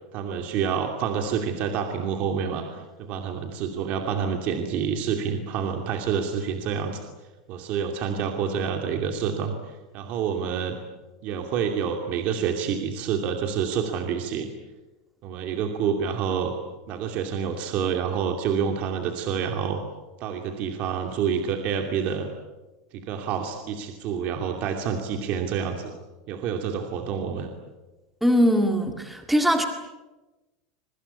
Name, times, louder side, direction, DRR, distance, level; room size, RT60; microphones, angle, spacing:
voice 1, 0.1-7.0 7.5-9.5 9.9-10.8 11.2-14.5 15.2-16.5 16.9-19.8 20.2-22.3 22.9-25.9 26.3-27.5, right 7 dB, 40° right, 4 dB, 2.6 m, -28 dB
voice 2, 28.2-29.7, equal, 5° right, 4 dB, 1.9 m, -21 dB
26.5 x 23.5 x 8.4 m, 1.1 s
supercardioid pair, 165°, 4 cm